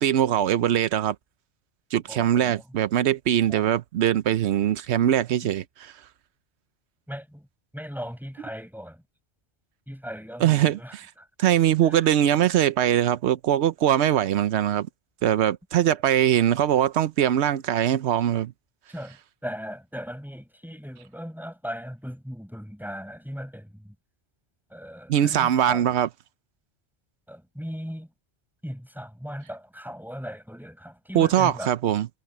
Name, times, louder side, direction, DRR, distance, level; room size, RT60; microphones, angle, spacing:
voice 1, 0.0-1.1 1.9-5.9 10.4-11.1 11.4-14.9 15.2-18.5 25.1-26.1 31.1-32.1, right 11 dB, 85° right, 0.9 m, -22 dB
voice 2, 2.1-2.6 3.5-3.7 7.1-7.5 7.7-9.0 9.9-11.3 11.8-12.1 18.9-19.2 19.4-23.9 24.7-25.9 27.3-28.1 28.6-31.7, equal, ahead, 6.0 m, -38 dB
omnidirectional pair, 1.1 m